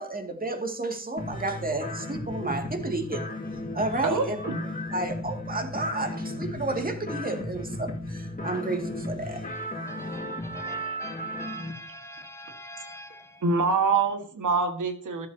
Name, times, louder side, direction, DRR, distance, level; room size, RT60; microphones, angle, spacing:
voice 1, 0.0-3.3 3.7-4.4 4.9-9.4, right 2 dB, 30° right, 2.4 m, -31 dB
sound 1, 1.2-11.7, left 1 dB, 25° left, 2.4 m, -35 dB
voice 2, 4.0-4.6 13.4-15.3, right 4 dB, 85° right, 1.9 m, -25 dB
voice 3, 9.5-13.4, left 1 dB, 10° left, 1.3 m, -45 dB
13.5 x 12.5 x 2.9 m
wide cardioid pair, 80°, 30 cm